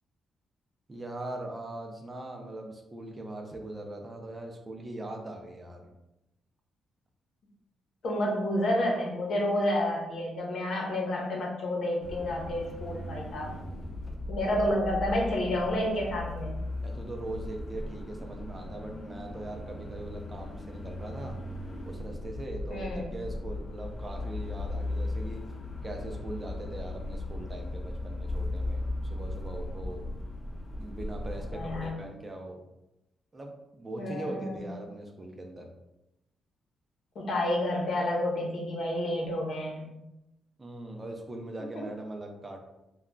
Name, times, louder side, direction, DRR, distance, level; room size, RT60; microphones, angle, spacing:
voice 1, 0.9-5.9 14.4-14.6 16.8-21.4 21.9-25.4 25.8-30.1 30.8-32.7 33.3-35.7 40.6-42.6, right 1 dB, 25° right, 2 dB, 0.5 m, -40 dB
voice 2, 8.0-13.5 14.3-16.6 22.7-23.1 31.5-32.0 34.0-34.7 37.1-39.9 41.7-41.8, left 1 dB, 65° left, -1 dB, 0.8 m, -30 dB
sound 1, 12.0-31.9, left 2 dB, 30° left, 0.4 m, -37 dB
2.3 x 2.2 x 3.7 m, 0.91 s
cardioid pair, 80°, 0 cm